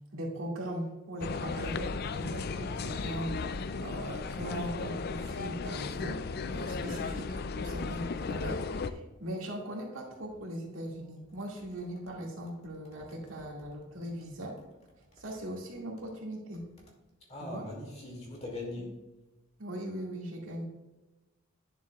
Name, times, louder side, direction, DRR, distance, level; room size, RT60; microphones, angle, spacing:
voice 1, 0.1-6.2 6.5-14.5 15.2-16.6 17.4-17.6 19.6-20.6, right 1 dB, 80° right, -1 dB, 2.1 m, -39 dB
sound 1, 1.2-8.9, left 4 dB, 50° left, 0.4 m, -35 dB
voice 2, 17.3-18.9, left 2 dB, 30° left, -1 dB, 2.3 m, -40 dB
10.5 x 7.2 x 2.4 m, 1.1 s
head